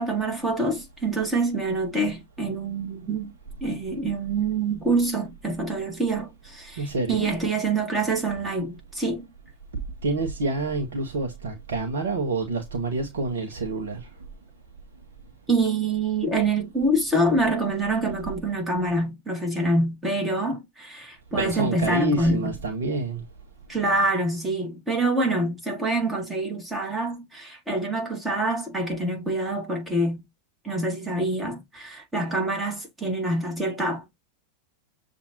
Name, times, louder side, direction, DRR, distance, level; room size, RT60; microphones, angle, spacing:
voice 1, 0.0-3.3 3.6-9.3 15.5-22.6 23.7-30.2 30.6-34.2, right 2 dB, 10° right, 1.9 m, -26 dB
voice 2, 6.8-7.3 10.0-14.1 21.4-23.2, right 2 dB, 65° right, 0.9 m, -27 dB
7.0 x 2.6 x 2.7 m
figure-of-eight pair, 90°, 0 cm